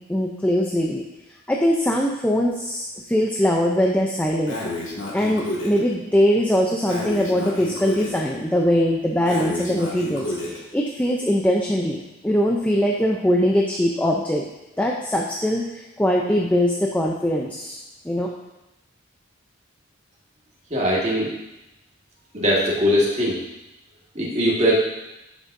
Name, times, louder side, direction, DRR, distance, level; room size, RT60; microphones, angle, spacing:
voice 1, 0.1-1.0 1.5-4.6 5.1-14.5 14.8-17.8 18.0-18.3, equal, 10° left, -1 dB, 0.5 m, -22 dB
Breathing, 4.5-5.8 6.9-8.2 9.3-10.6, left 1 dB, 70° left, 1.9 m, -30 dB
voice 2, 20.7-21.3 22.3-23.3 24.1-24.7, equal, 30° right, -4 dB, 1.7 m, -20 dB
12.0 x 6.1 x 2.6 m, 0.98 s
head